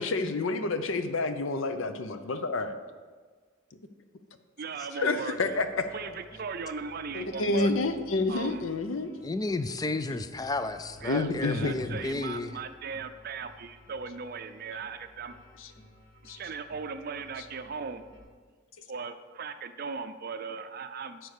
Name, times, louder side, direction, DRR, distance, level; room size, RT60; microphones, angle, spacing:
voice 1, 0.0-2.7 5.0-5.8 7.1-9.1 11.1-11.8 15.6-15.7 16.3-16.4, left 3 dB, 80° left, 0.7 m, -29 dB
voice 2, 4.6-5.6 5.9-7.7 8.3-8.6 11.0-15.3 16.3-18.0 18.9-21.2, right 5 dB, 50° right, 0.5 m, -38 dB
sound 1, 5.3-18.2, left 1 dB, 50° left, 2.0 m, -55 dB
voice 3, 9.2-12.6, left 2 dB, 20° left, 0.4 m, -32 dB
9.6 x 4.6 x 6.6 m
head